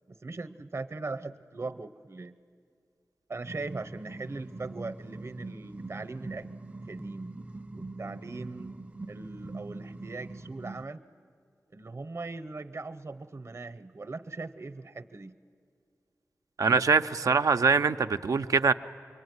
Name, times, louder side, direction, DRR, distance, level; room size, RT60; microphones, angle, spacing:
voice 1, 0.1-2.4 3.3-6.5 6.9-7.3 7.7-8.7 9.1-11.0 11.7-15.4, right 3 dB, 55° right, 11 dB, 0.9 m, -40 dB
sound 1, 3.5-10.8, right 2 dB, 25° right, 0.6 m, -42 dB
voice 2, 16.6-18.7, right 5 dB, 85° right, 9 dB, 0.6 m, -23 dB
25.5 x 23.0 x 9.6 m, 2.3 s
wide cardioid pair, 60°, 6 cm